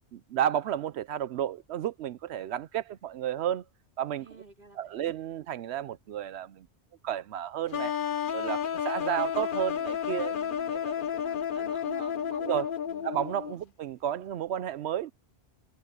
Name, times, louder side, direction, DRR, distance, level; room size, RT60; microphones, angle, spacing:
voice 1, 0.1-3.6 4.0-4.3 4.7-6.7 7.0-8.0 8.3-10.3 10.7-10.9 12.4-12.7 13.0-15.1, right 10 dB, 80° right, 0.9 m, -32 dB
voice 2, 4.2-5.1 10.3-12.5 12.9-13.2 13.6-13.7, right 3 dB, 50° right, 4.7 m, -48 dB
sound 1, 7.7-13.5, left 8 dB, 55° left, 1.0 m, -31 dB
omnidirectional pair, 1.1 m